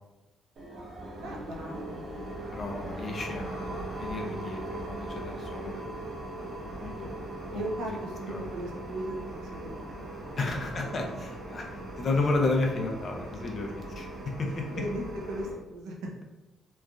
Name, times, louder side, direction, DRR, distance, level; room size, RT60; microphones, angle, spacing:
sound 1, 0.6-15.6, right 1 dB, 60° right, 0.8 m, -39 dB
voice 1, 1.2-2.1 7.5-9.8 10.2-10.6 14.7-15.9, right 1 dB, 90° right, -1 dB, 0.6 m, -37 dB
voice 2, 2.5-6.0 6.4-7.2 7.5-7.7 8.3-8.4 10.4-14.7, left 3 dB, 45° left, 1 dB, 0.6 m, -33 dB
3.1 x 2.4 x 2.3 m, 1.0 s
cardioid pair, 90°, 0 cm